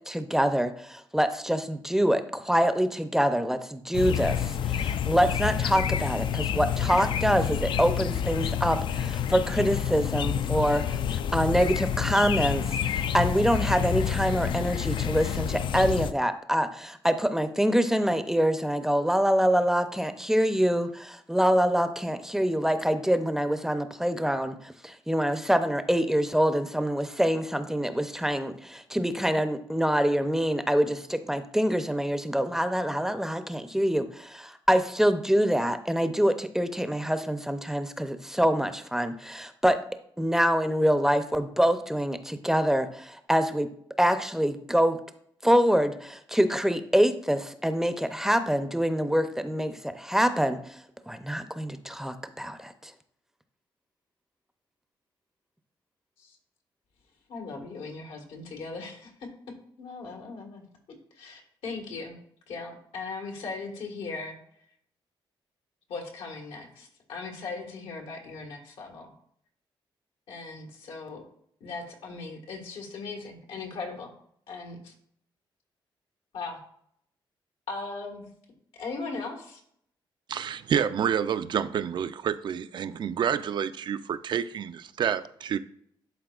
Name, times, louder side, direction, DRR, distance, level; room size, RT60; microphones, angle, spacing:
voice 1, 0.1-39.8 40.2-43.7 44.0-45.0 45.4-50.8 51.1-52.9, equal, 5° right, 0.5 m, -25 dB
sound 1, 3.9-16.1, left 9 dB, 65° left, 0.3 m, -28 dB
voice 2, 57.3-60.6 60.9-62.2 62.5-64.4 65.9-69.1 70.3-71.2 71.6-74.1 74.5-74.9 76.3-76.6 77.7-78.2 78.7-79.6, left 4 dB, 90° left, 1.6 m, -38 dB
voice 3, 80.3-85.6, right 8 dB, 55° right, 0.4 m, -28 dB
11.5 x 4.2 x 2.4 m
cardioid pair, 100°, 9 cm